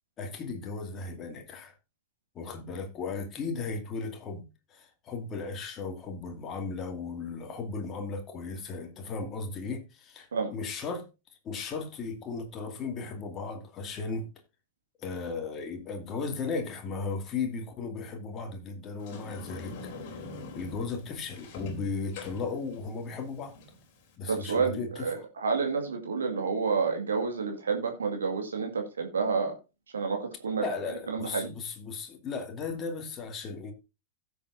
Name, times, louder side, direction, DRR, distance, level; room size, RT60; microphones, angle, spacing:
voice 1, 0.2-1.7 2.3-11.1 11.4-14.3 15.0-19.9 20.5-23.5 24.2-25.3 30.6-33.7, left 4 dB, 30° left, 2.2 m, -36 dB
Sliding door, 19.0-24.2, left 3 dB, 45° left, 3.2 m, -44 dB
voice 2, 24.3-29.6 29.9-30.6 31.1-31.5, right 5 dB, 70° right, 1.9 m, -29 dB
16.5 x 6.9 x 2.6 m
figure-of-eight pair, 90°, 0 cm